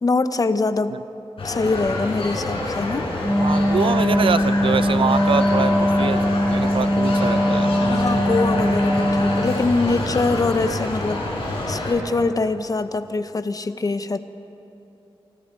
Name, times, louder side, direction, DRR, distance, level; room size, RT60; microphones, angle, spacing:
voice 1, 0.0-0.9 1.4-3.1 7.9-11.2 11.7-14.2, left 3 dB, 40° left, 11 dB, 0.9 m, -23 dB
sound 1, 1.4-11.9, left 2 dB, 85° left, 5.3 m, -27 dB
Wind instrument woodwind instrument, 3.2-9.7, equal, ahead, 1.5 m, -20 dB
voice 2, 3.4-6.2 6.5-8.3, right 6 dB, 70° right, 14 dB, 0.6 m, -25 dB
27.0 x 25.0 x 4.5 m, 2.9 s
wide cardioid pair, 100°, 9 cm